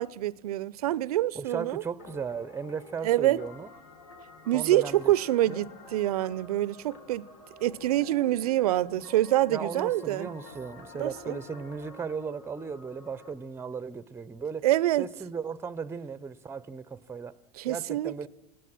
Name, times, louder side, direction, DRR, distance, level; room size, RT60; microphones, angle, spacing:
voice 1, 0.0-1.8 3.0-3.4 4.5-7.3 7.6-10.3 10.9-11.4 14.6-15.1 17.6-18.3, right 14 dB, 70° right, 0.6 m, -26 dB
voice 2, 1.3-3.7 4.5-5.1 5.5-5.7 8.9-9.0 9.5-14.7 15.0-17.4 17.6-18.3, right 5 dB, 10° right, 0.8 m, -36 dB
sound 1, 2.0-13.3, left 3 dB, 60° left, 4.3 m, -49 dB
28.5 x 17.5 x 6.2 m
hypercardioid pair, 90°, 20 cm